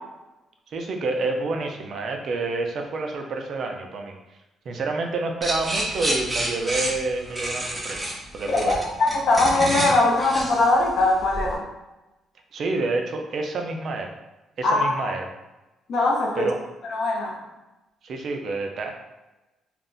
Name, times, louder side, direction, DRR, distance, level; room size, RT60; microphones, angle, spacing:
voice 1, 0.7-4.1 4.7-8.1 8.3-8.8 12.5-14.1 14.6-15.3 16.4-16.5 18.0-18.9, right 3 dB, 60° right, 3 dB, 0.4 m, -28 dB
sound 1, 5.4-11.5, right 1 dB, 10° right, 0.7 m, -29 dB
voice 2, 8.5-11.7 14.6-15.1 15.9-16.5 16.9-17.4, left 2 dB, 65° left, 0 dB, 0.6 m, -21 dB
2.5 x 2.0 x 3.7 m, 1.0 s
cardioid pair, 90°, 0 cm